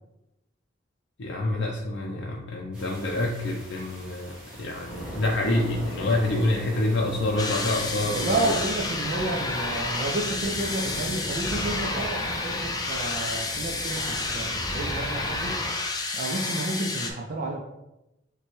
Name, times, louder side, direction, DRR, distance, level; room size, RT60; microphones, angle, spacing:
voice 1, 1.2-8.6, left 2 dB, 80° left, -1 dB, 0.5 m, -27 dB
sound 1, 2.7-15.7, right 1 dB, 5° right, 1.6 m, -38 dB
sound 2, 7.4-17.1, left 3 dB, 20° left, 0.5 m, -30 dB
voice 2, 8.1-15.6 16.1-17.6, right 2 dB, 45° right, -1 dB, 0.5 m, -31 dB
6.7 x 2.2 x 3.1 m, 0.93 s
head